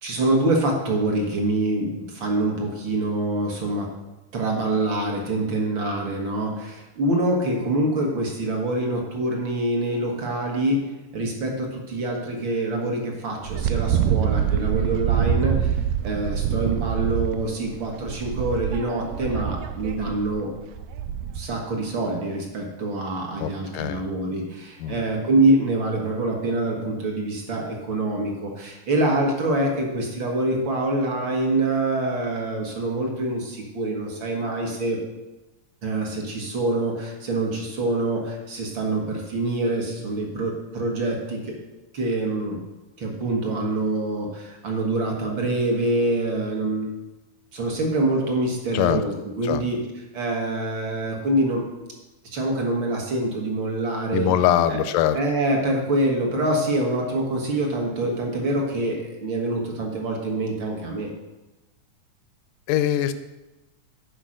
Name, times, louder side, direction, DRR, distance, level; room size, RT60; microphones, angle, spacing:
voice 1, 0.0-3.9 4.3-10.8 11.1-20.5 21.3-35.0 35.8-41.5 41.9-42.6 43.0-46.9 47.5-49.8 50.1-51.7 52.3-54.3 54.7-54.8 55.1-61.1, right 2 dB, 50° right, 0 dB, 1.6 m, -25 dB
Wind, 13.4-21.6, right 9 dB, 85° right, 2.1 m, -25 dB
voice 2, 23.4-24.1 24.8-25.0 48.7-49.0 49.4-49.6 54.1-55.2 62.7-63.1, left 11 dB, 85° left, 11 dB, 2.2 m, -22 dB
10.0 x 5.1 x 6.4 m, 1.0 s
omnidirectional pair, 3.8 m